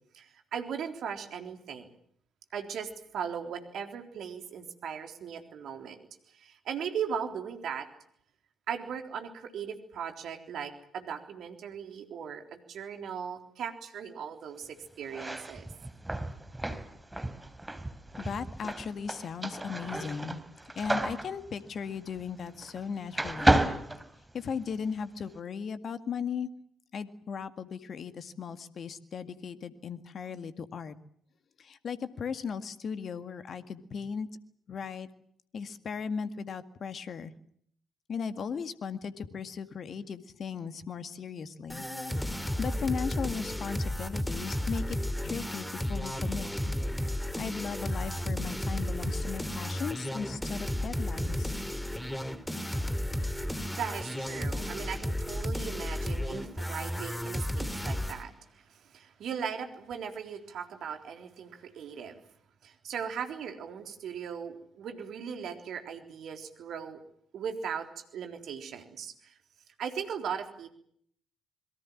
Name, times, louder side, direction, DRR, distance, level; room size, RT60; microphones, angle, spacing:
voice 1, 0.1-1.9 2.5-6.1 6.3-7.9 8.7-15.7 52.9-53.0 53.7-62.2 62.6-67.0 67.3-67.9 68.1-69.4 69.8-70.7, right 7 dB, 60° right, 6 dB, 3.8 m, -38 dB
sound 1, 15.0-22.8 23.1-24.8, right 1 dB, 15° right, 4.0 m, -31 dB
voice 2, 18.2-20.4 20.8-23.6 24.3-26.5 26.9-30.9 31.6-34.3 34.7-35.1 35.5-37.3 38.1-41.9 42.3-45.0 45.2-46.7 47.4-51.5, left 6 dB, 50° left, 11 dB, 1.9 m, -37 dB
sound 2, 41.7-58.2, left 1 dB, 5° left, 2.8 m, -33 dB
27.0 x 22.5 x 7.3 m, 0.65 s
hypercardioid pair, 45°, 0 cm